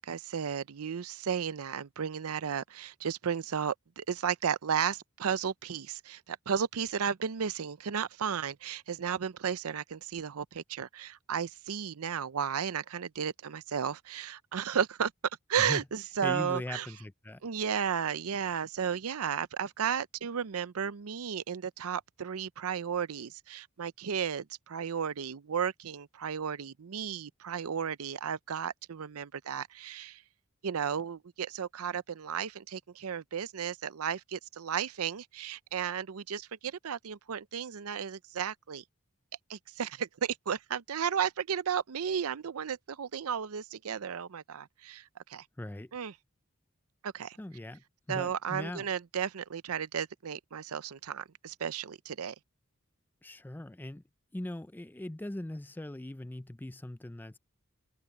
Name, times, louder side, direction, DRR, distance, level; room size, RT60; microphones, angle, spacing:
voice 1, 0.0-15.1 15.5-16.9 17.4-30.2 30.6-38.8 39.5-45.0 45.3-45.4 45.9-46.1 47.0-47.4 48.1-52.3, right 7 dB, 80° right, 0.6 m, -34 dB
voice 2, 16.2-17.4 45.6-45.9 47.4-48.9 53.2-54.0 54.3-57.4, left 1 dB, 10° left, 0.4 m, -40 dB
head